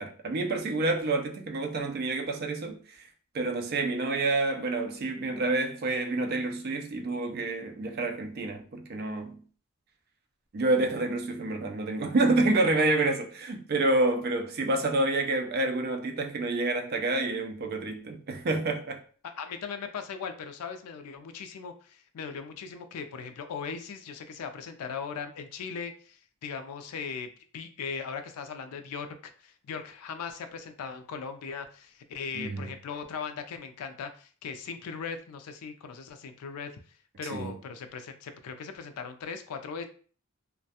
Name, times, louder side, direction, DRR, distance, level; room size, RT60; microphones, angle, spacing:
voice 1, 0.0-3.0 3.3-9.4 10.5-19.0 32.3-32.7 37.3-37.6, right 2 dB, 45° right, 0.3 m, -28 dB
voice 2, 19.4-36.7 37.2-39.8, left 6 dB, 85° left, 0.4 m, -39 dB
2.3 x 2.1 x 2.7 m
head